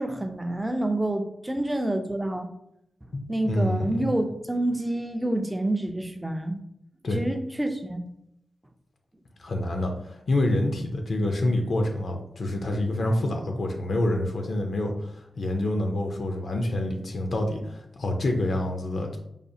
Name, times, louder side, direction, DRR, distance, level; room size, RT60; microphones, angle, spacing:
voice 1, 0.0-2.5 3.3-6.6 7.1-8.0, right 1 dB, 10° right, 5 dB, 0.4 m, -28 dB
voice 2, 3.1-4.1 7.0-7.2 9.4-19.2, left 1 dB, 60° left, 3 dB, 0.5 m, -27 dB
4.9 x 2.4 x 2.7 m, 0.78 s
wide cardioid pair, 170°, 0 cm